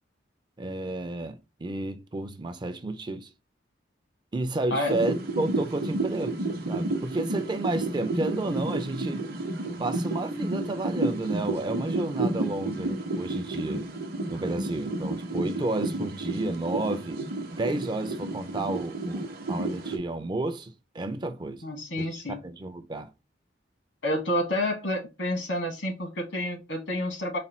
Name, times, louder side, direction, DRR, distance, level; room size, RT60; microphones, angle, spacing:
voice 1, 0.6-3.3 4.3-6.4 6.7-9.2 9.8-13.9 14.3-17.2 17.5-21.6 22.0-23.1, right 2 dB, 25° right, 0.4 m, -31 dB
sound 1, 4.9-20.0, right 2 dB, 55° right, 0.7 m, -31 dB
voice 2, 21.6-22.4 24.0-27.4, left 1 dB, 75° left, 1.4 m, -29 dB
4.2 x 2.2 x 4.0 m
head